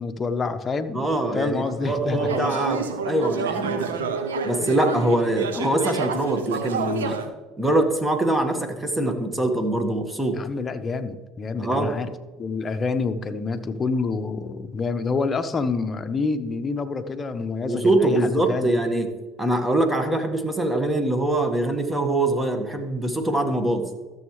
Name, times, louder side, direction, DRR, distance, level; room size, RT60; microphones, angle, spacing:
voice 1, 0.0-2.5 10.3-12.1 12.4-18.7, left 4 dB, 30° left, 8 dB, 0.9 m, -27 dB
voice 2, 0.9-4.0 4.4-7.2 7.6-10.4 11.6-11.9 17.6-19.1 19.4-23.9, right 1 dB, 15° right, 6 dB, 1.6 m, -23 dB
sound 1, 1.6-7.3, right 5 dB, 90° right, 0.9 m, -29 dB
14.0 x 7.2 x 3.2 m, 1.3 s
hypercardioid pair, 75°, 0 cm